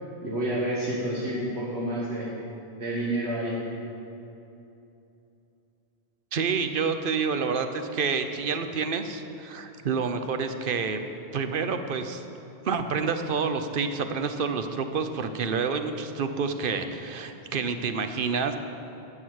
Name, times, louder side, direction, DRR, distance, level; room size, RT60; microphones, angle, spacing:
voice 1, 0.2-2.3 2.8-3.6, right 1 dB, 75° right, -5 dB, 1.7 m, -29 dB
voice 2, 6.3-11.0 11.3-12.2 12.6-18.6, right 5 dB, 60° right, 8 dB, 0.8 m, -28 dB
11.5 x 7.9 x 6.4 m, 2.8 s
omnidirectional pair, 1.1 m